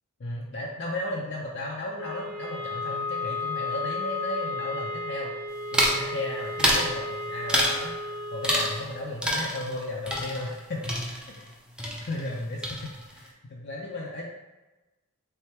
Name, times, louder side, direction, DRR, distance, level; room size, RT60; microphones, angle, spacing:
voice 1, 0.2-5.3 5.7-7.9 8.3-11.0 11.4-11.5 12.0-14.3, left 1 dB, 55° left, -3 dB, 0.5 m, -35 dB
sound 1, 1.9-8.9, left 3 dB, 80° right, 0.6 m, -34 dB
sound 2, 5.7-6.1 6.6-6.9 7.5-7.9 8.4-8.9 9.2-11.5 11.8-12.4 12.6-13.2, equal, 5° right, 0.5 m, -27 dB
3.4 x 3.3 x 4.4 m, 1.1 s
head